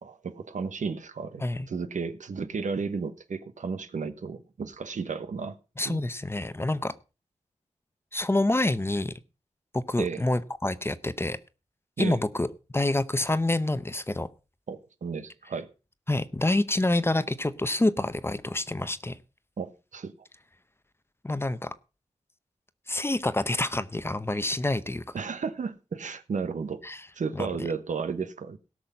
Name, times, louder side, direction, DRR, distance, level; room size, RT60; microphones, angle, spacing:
voice 1, 0.0-5.6 5.8-6.0 10.0-10.2 12.0-12.2 14.7-15.7 19.6-20.1 25.1-26.8 27.1-28.6, right 5 dB, 90° right, 1.1 m, -33 dB
voice 2, 5.8-6.9 8.1-9.1 9.7-11.4 12.0-12.5 12.7-14.3 16.1-19.2 21.2-21.7 22.9-25.0 26.8-27.0 27.3-27.5, left 2 dB, 20° left, 0.7 m, -27 dB
17.5 x 6.2 x 5.5 m
wide cardioid pair, 85°, 12 cm